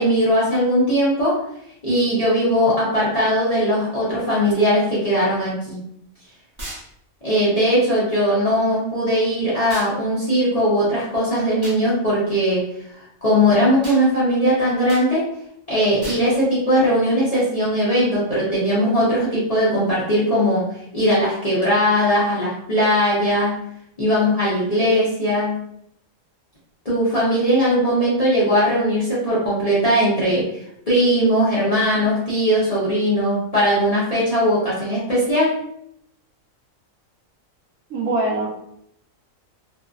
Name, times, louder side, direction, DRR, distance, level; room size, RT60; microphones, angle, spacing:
voice 1, 0.0-1.4 1.8-5.8 7.2-12.6 13.2-15.3 15.7-20.7 20.9-23.6 24.0-25.6 26.8-35.6, equal, 35° left, -9 dB, 0.6 m, -19 dB
sound 1, 6.6-6.9 9.7-9.9 11.6-11.8 13.8-14.0 14.9-15.1 16.0-16.3, right 1 dB, 30° right, 0.5 m, -35 dB
voice 2, 37.9-38.5, right 2 dB, 70° right, -2 dB, 1.0 m, -22 dB
2.6 x 2.4 x 2.3 m, 0.74 s
omnidirectional pair, 1.4 m